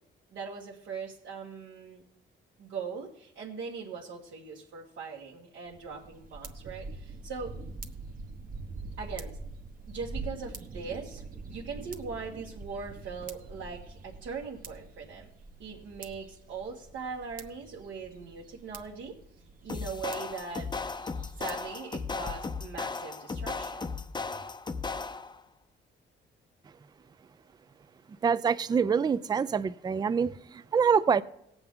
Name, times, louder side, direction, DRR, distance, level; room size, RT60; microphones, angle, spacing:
voice 1, 0.3-2.0 2.6-7.6 9.0-9.4 9.8-15.3 15.6-19.2 19.6-20.7 21.4-23.9, right 5 dB, 75° right, 1.5 m, -40 dB
sound 1, 5.7-21.7, right 3 dB, 45° right, 1.1 m, -44 dB
sound 2, 19.7-25.4, left 4 dB, 20° left, 0.6 m, -36 dB
voice 2, 28.2-31.2, right 6 dB, 20° right, 0.4 m, -26 dB
17.5 x 7.9 x 3.7 m
cardioid pair, 90°, 20 cm